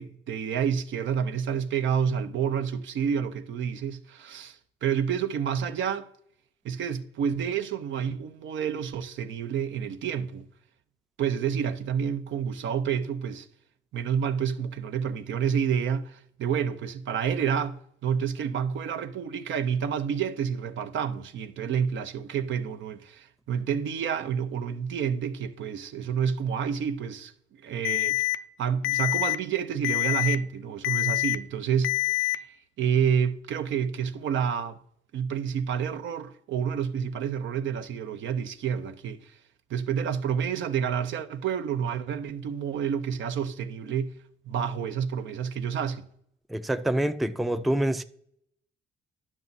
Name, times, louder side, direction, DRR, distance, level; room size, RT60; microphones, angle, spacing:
voice 1, 0.0-6.1 6.6-10.5 11.2-13.5 13.9-28.3 28.6-34.8 35.1-39.3 39.7-44.1 44.5-46.1, right 7 dB, 70° right, 0.7 m, -29 dB
Alarm, 27.8-28.3 28.8-29.3 29.8-30.3 30.8-31.3 31.8-32.3, left 19 dB, 75° left, 0.5 m, -25 dB
voice 2, 46.5-48.0, right 1 dB, ahead, 0.4 m, -26 dB
11.0 x 6.0 x 4.0 m
cardioid pair, 90°, 20 cm